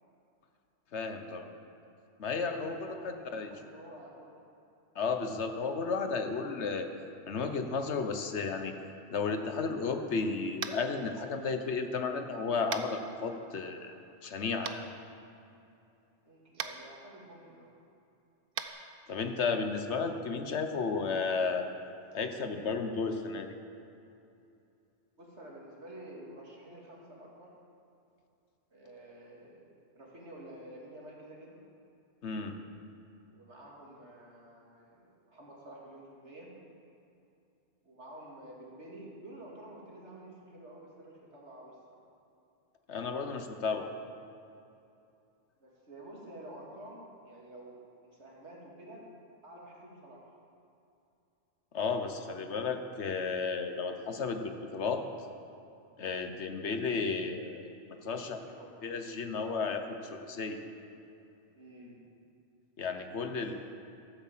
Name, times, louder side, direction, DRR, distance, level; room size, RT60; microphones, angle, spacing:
voice 1, 0.9-1.5 2.2-3.5 5.0-6.9 7.3-8.7 9.1-13.9 14.2-14.9 19.1-21.6 22.1-23.5 32.2-32.5 42.9-43.9 51.7-55.0 56.0-57.7 58.0-58.4 58.8-60.6 62.8-63.5, left 4 dB, 75° left, 6 dB, 1.3 m, -33 dB
voice 2, 2.4-4.3 16.2-17.7 25.2-27.5 28.7-31.6 33.3-36.5 37.8-42.0 45.6-49.0 49.4-50.4 57.9-58.7 61.5-62.1 63.3-63.4, right 1 dB, 75° right, -3 dB, 2.7 m, -50 dB
Tap, 10.6-10.9 12.7-12.9 14.6-14.7 16.5-16.7 18.5-18.7, right 7 dB, 60° right, 0.8 m, -36 dB
13.5 x 8.7 x 7.4 m, 2.7 s
omnidirectional pair, 1.2 m